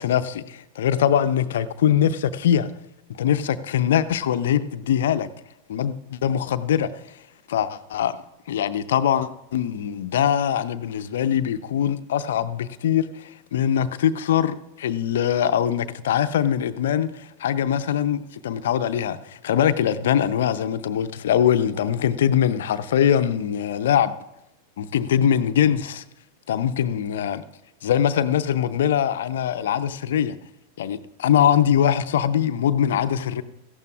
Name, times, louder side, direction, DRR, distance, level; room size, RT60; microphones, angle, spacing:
voice 1, 0.0-2.7 3.2-5.3 5.7-6.9 7.5-8.1 8.5-24.1 24.8-26.0 26.5-27.4 27.8-30.4 30.8-33.4, left 9 dB, 60° left, 0.6 m, -22 dB
17.5 x 14.5 x 2.4 m
figure-of-eight pair, 90°, 0 cm